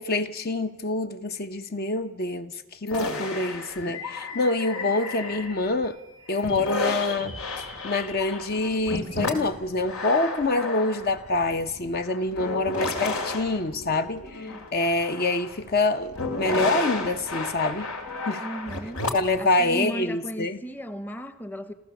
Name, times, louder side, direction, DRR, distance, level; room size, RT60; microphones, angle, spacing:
voice 1, 0.0-6.0 6.3-17.9 18.3-18.4 19.1-20.6, left 2 dB, 45° left, 0.7 m, -26 dB
sound 1, 2.9-5.8 6.3-19.4, left 3 dB, 85° left, 2.5 m, -32 dB
voice 2, 18.4-19.0 19.4-21.7, right 1 dB, 10° left, 0.8 m, -35 dB
27.5 x 14.5 x 7.0 m
head